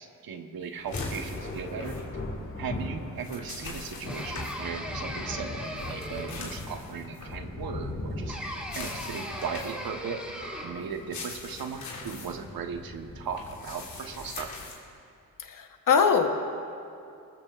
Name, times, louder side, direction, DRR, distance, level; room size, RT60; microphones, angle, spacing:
voice 1, 0.0-2.0 2.6-10.2 10.6-14.5, right 6 dB, 80° right, 4 dB, 1.3 m, -37 dB
Thunder, 0.8-14.6, left 2 dB, 35° left, 2.3 m, -40 dB
sound 1, 0.9-2.0 3.0-4.6 5.8-7.3 8.6-9.9 10.9-12.3 13.3-14.8, left 4 dB, 80° left, 3.3 m, -42 dB
sound 2, 4.1-6.6 8.3-10.9, equal, 5° right, 2.8 m, -38 dB
voice 2, 15.4-16.3, left 6 dB, 60° left, 4 dB, 1.3 m, -22 dB
22.5 x 19.0 x 2.5 m, 2.6 s
cardioid pair, 80°, 35 cm